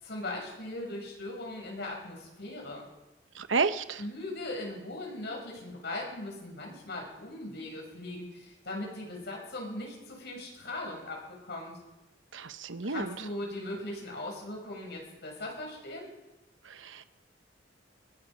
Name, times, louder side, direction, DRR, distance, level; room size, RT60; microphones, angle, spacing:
voice 1, 0.0-2.9 4.0-11.7 12.8-16.1, left 2 dB, 60° left, 0 dB, 7.6 m, -39 dB
voice 2, 3.4-4.0 12.3-13.2 16.7-17.0, right 4 dB, 85° right, 11 dB, 1.0 m, -31 dB
24.0 x 22.0 x 5.3 m, 1.0 s
head